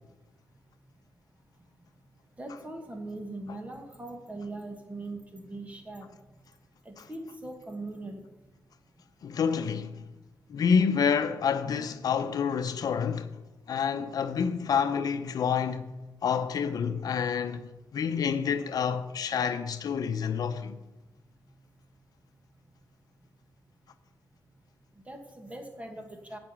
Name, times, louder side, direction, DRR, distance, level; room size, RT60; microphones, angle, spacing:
voice 1, 2.4-6.1 6.9-8.2 25.1-26.4, right 2 dB, 20° right, 1.9 m, -40 dB
voice 2, 9.2-10.0 10.5-13.4 13.7-16.0 16.2-20.8, left 6 dB, 70° left, 0.7 m, -28 dB
11.0 x 6.1 x 8.7 m
cardioid pair, 105°, 7 cm